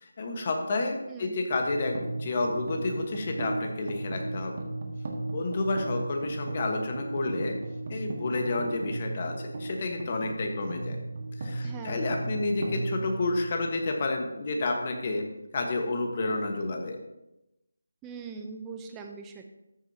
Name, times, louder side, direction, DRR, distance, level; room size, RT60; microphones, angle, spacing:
voice 1, 0.0-4.5 5.3-7.6 7.9-11.0 11.4-15.3 15.5-17.0, left 2 dB, 30° left, 3 dB, 1.3 m, -30 dB
sound 1, 1.5-13.9, right 2 dB, 40° right, 1.5 m, -36 dB
voice 2, 11.6-12.0 18.0-19.5, right 5 dB, 10° right, 4 dB, 0.6 m, -41 dB
13.5 x 8.0 x 2.9 m, 0.92 s
figure-of-eight pair, 170°, 0 cm